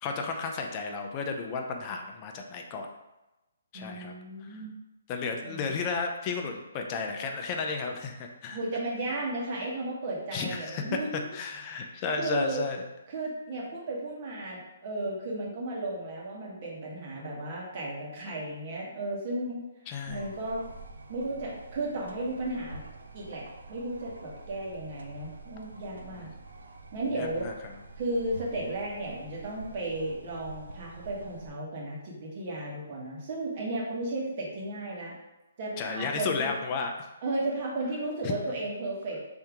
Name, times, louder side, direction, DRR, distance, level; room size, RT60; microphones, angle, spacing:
voice 1, 0.0-2.9 3.7-4.1 4.4-4.6 5.1-8.6 10.3-10.8 11.3-12.8 19.9-20.3 27.1-27.5 35.8-37.1 38.2-38.3, left 4 dB, 30° left, 3 dB, 0.5 m, -33 dB
voice 2, 3.7-4.7 5.4-5.7 8.5-11.2 11.7-11.8 12.1-12.7 13.1-19.6 20.1-20.7 21.1-22.8 23.1-26.3 26.9-27.5 28.0-35.1 35.6-36.5 37.2-39.2, right 2 dB, 45° right, -4 dB, 1.2 m, -34 dB
sound 1, 20.0-31.5, right 3 dB, 80° right, 0.4 m, -47 dB
3.5 x 2.7 x 3.5 m, 1.0 s
hypercardioid pair, 145°, 0 cm